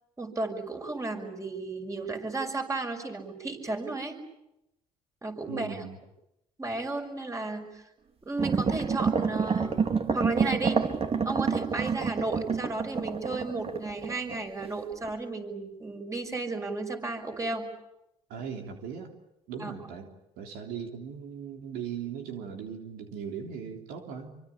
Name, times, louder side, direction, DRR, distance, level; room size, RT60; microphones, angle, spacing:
voice 1, 0.2-4.2 5.2-5.8 6.6-7.8 8.2-9.8 10.1-10.8 11.2-17.7 19.6-19.7, right 3 dB, 20° right, 4 dB, 6.1 m, -33 dB
voice 2, 5.5-6.0 18.3-19.1 19.5-20.1 20.4-24.3, right 7 dB, 85° right, 3 dB, 3.4 m, -38 dB
sound 1, 8.4-14.7 15.0-15.1, right 5 dB, 40° right, 3.0 m, -28 dB
25.5 x 25.0 x 8.5 m, 0.88 s
supercardioid pair, 75°, 15 cm